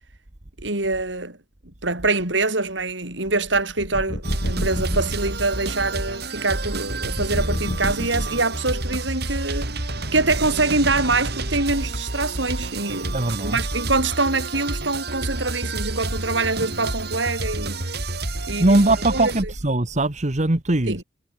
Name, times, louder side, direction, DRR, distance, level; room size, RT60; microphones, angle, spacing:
voice 1, 0.6-1.4 1.8-9.7 10.1-17.8 18.5-19.5 20.9-21.0, right 3 dB, 85° right, 7.1 m, -24 dB
sound 1, 3.8-5.4 6.9-8.7, equal, 55° left, 4.7 m, -29 dB
sound 2, 4.2-19.4, right 2 dB, 60° right, 5.8 m, -29 dB
voice 2, 13.1-13.6 18.6-21.0, right 2 dB, 40° right, 1.5 m, -20 dB
head